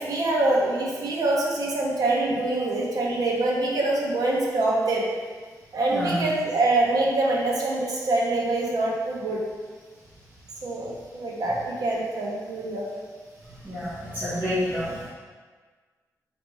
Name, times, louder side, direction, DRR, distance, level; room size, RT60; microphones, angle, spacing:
voice 1, 0.0-5.0 5.7-9.4 10.6-11.6 11.8-12.8, right 2 dB, 65° right, -3 dB, 0.7 m, -25 dB
voice 2, 5.9-6.2 13.6-15.1, equal, 25° right, -11 dB, 0.9 m, -28 dB
4.1 x 2.9 x 3.3 m, 1.5 s
wide cardioid pair, 130°, 7 cm